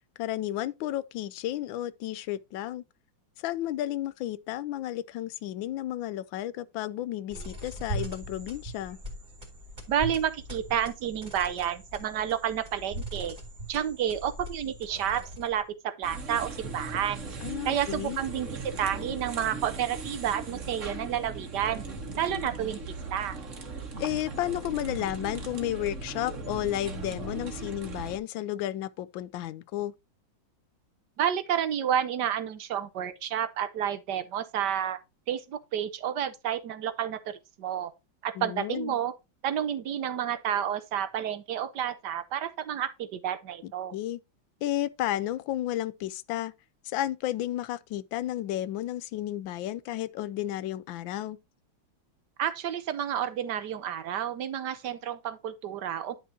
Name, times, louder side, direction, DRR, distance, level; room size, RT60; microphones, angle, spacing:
voice 1, 0.2-2.8 3.4-9.0 17.4-18.2 24.0-29.9 38.4-38.9 43.6-44.2 44.6-46.5 46.8-51.4, left 13 dB, 80° left, 1.3 m, -32 dB
sound 1, 7.3-15.7, right 1 dB, 20° right, 2.2 m, -40 dB
voice 2, 9.9-13.4 13.7-17.2 17.6-21.8 22.1-22.8 23.1-23.4 31.2-35.0 35.3-37.9 38.2-39.1 39.4-43.9 52.4-56.2, right 9 dB, 65° right, 1.3 m, -30 dB
sound 2, 16.0-28.2, right 3 dB, 40° right, 1.8 m, -38 dB
10.0 x 6.3 x 2.7 m
omnidirectional pair, 2.1 m